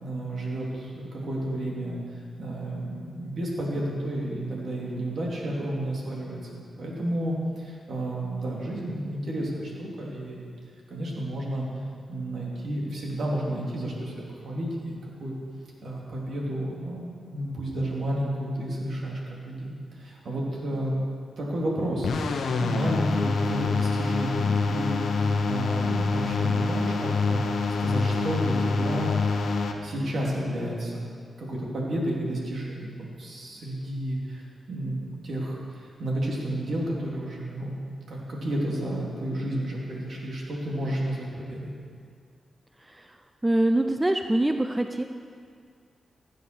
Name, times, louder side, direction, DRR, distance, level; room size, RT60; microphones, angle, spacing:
voice 1, 0.0-2.0 2.4-6.4 6.8-10.5 10.9-11.6 12.1-15.3 15.8-20.9 21.4-27.4 27.8-29.1 29.8-31.1 31.4-34.4 34.7-37.7 38.1-41.7, right 1 dB, 65° right, -3 dB, 3.2 m, -31 dB
sound 1, 22.0-29.7, left 4 dB, 80° left, 1.0 m, -26 dB
voice 2, 42.8-43.2 43.4-45.0, right 1 dB, 15° right, 6 dB, 0.6 m, -24 dB
15.5 x 8.5 x 6.1 m, 2.2 s
cardioid pair, 80°, 0 cm